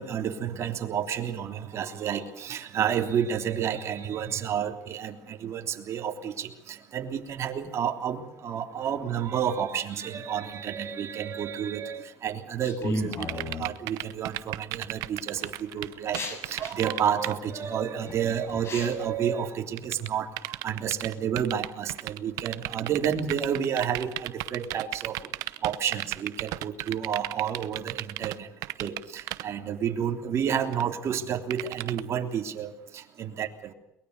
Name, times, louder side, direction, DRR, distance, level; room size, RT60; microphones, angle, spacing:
voice 1, 0.0-13.3 13.6-25.1 25.6-28.5 28.8-33.7, right 8 dB, 50° right, 4 dB, 3.3 m, -30 dB
sound 1, 12.6-13.7 14.5-14.9 15.4-19.0, left 2 dB, 45° left, 7.1 m, -35 dB
sound 2, 13.1-17.3 19.8-28.4 28.6-29.4 30.7-30.8 31.5-32.0, right 18 dB, 75° right, 0.9 m, -34 dB
22.5 x 21.0 x 6.6 m, 0.84 s
supercardioid pair, 90°, 6 cm